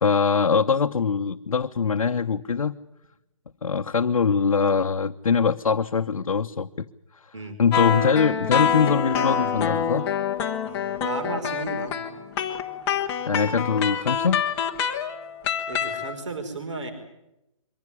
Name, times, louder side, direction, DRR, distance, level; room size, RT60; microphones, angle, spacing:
voice 1, 0.0-2.8 3.6-6.9 7.6-10.1 13.3-14.4, left 5 dB, 80° left, 4 dB, 1.0 m, -22 dB
sound 1, 7.7-16.1, left 7 dB, 10° left, 1.0 m, -26 dB
voice 2, 11.0-12.0 15.7-16.9, right 3 dB, 60° right, 6 dB, 4.8 m, -33 dB
23.5 x 15.5 x 9.9 m, 0.90 s
hypercardioid pair, 170°, 18 cm